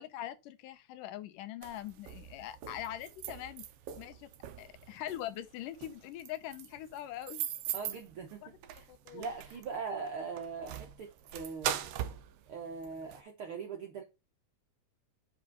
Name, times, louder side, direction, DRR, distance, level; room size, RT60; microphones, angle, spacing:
voice 1, 0.0-3.7 4.0-4.3 4.6-7.5 8.9-9.3, left 12 dB, 80° left, 2.3 m, -42 dB
sound 1, 1.6-13.2, right 10 dB, 90° right, 1.3 m, -41 dB
voice 2, 7.7-8.9 9.1-11.8 12.5-14.0, right 5 dB, 70° right, 1.3 m, -41 dB
5.5 x 5.3 x 5.3 m
omnidirectional pair, 3.8 m